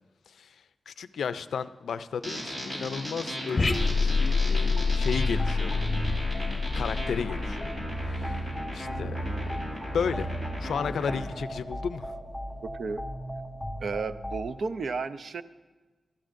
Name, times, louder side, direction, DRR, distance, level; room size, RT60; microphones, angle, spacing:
voice 1, 0.3-0.6 0.9-5.9 6.7-7.7 8.0-8.5 8.7-9.6 9.9-10.3 10.6-12.2, left 6 dB, 90° left, 14 dB, 0.4 m, -34 dB
sound 1, 2.2-11.2, equal, 35° right, 4.2 m, -37 dB
sound 2, 3.6-8.2, left 4 dB, 30° left, 0.9 m, -27 dB
sound 3, 4.6-14.5, equal, 20° right, 3.1 m, -36 dB
voice 2, 13.8-15.4, right 4 dB, 65° right, 13 dB, 0.5 m, -32 dB
19.0 x 13.0 x 2.6 m, 1.3 s
wide cardioid pair, 90°, 0 cm